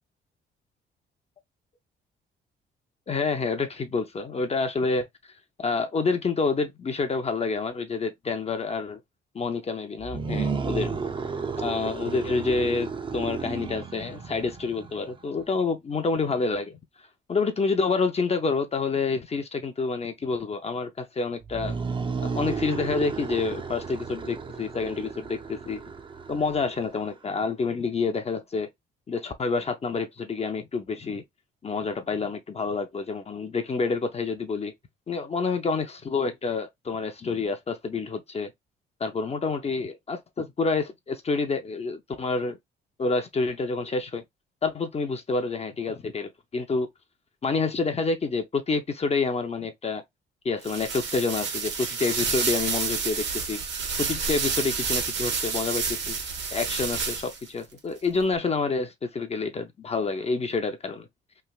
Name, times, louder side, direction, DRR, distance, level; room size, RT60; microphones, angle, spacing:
voice 1, 3.1-5.1 5.6-9.0 9.3-11.0 11.6-16.8 17.3-21.8 22.2-25.8 26.3-28.7 29.1-31.2 31.6-34.7 35.1-38.5 39.0-42.6 43.0-44.2 44.6-46.9 47.4-50.0 50.4-53.6 54.0-56.2 56.5-61.1, left 4 dB, 30° left, 0.5 m, -28 dB
sound 1, 10.0-15.2 21.4-27.1, right 5 dB, 25° right, 0.5 m, -33 dB
sound 2, 50.6-57.5, right 5 dB, 65° right, 1.1 m, -29 dB
3.2 x 2.6 x 2.3 m
cardioid pair, 90°, 20 cm